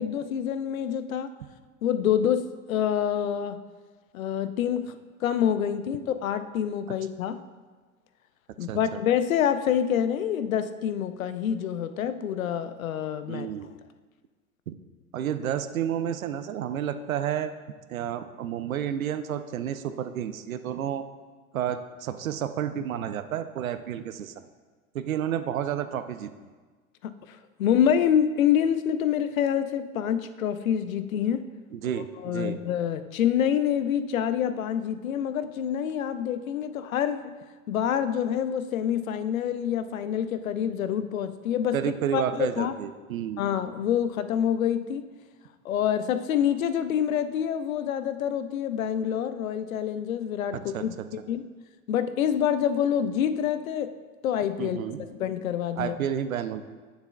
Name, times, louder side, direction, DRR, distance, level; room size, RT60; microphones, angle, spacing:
voice 1, 0.0-1.3 1.8-3.6 4.1-5.0 5.2-7.4 8.6-13.5 27.0-31.5 32.2-37.3 37.7-41.8 42.1-42.7 43.4-45.0 45.6-50.9 51.3-51.5 51.9-53.9 54.2-54.8 55.1-55.9, left 9 dB, 70° left, 12 dB, 0.5 m, -26 dB
voice 2, 8.7-9.0 13.3-13.7 14.7-14.8 15.1-17.5 17.9-21.1 21.5-24.4 24.9-26.3 31.7-32.6 41.7-43.4 50.5-51.1 54.6-55.0 55.8-56.6, right 9 dB, 75° right, 11 dB, 0.6 m, -31 dB
8.8 x 6.7 x 2.3 m, 1.4 s
figure-of-eight pair, 85°, 42 cm